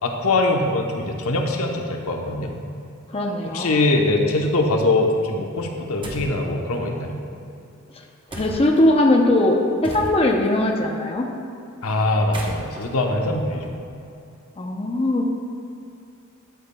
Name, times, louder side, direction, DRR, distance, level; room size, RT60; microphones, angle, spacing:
voice 1, 0.0-2.6 3.4-7.2 11.8-13.7, left 2 dB, 85° left, 2 dB, 0.9 m, -22 dB
voice 2, 3.1-3.7 8.4-11.3 14.6-15.2, left 1 dB, 30° left, 1 dB, 0.7 m, -20 dB
sound 1, 6.0-6.4 8.3-8.8 9.8-10.5 12.1-14.1, right 1 dB, 25° right, 0.9 m, -36 dB
12.5 x 8.5 x 2.3 m, 2.6 s
head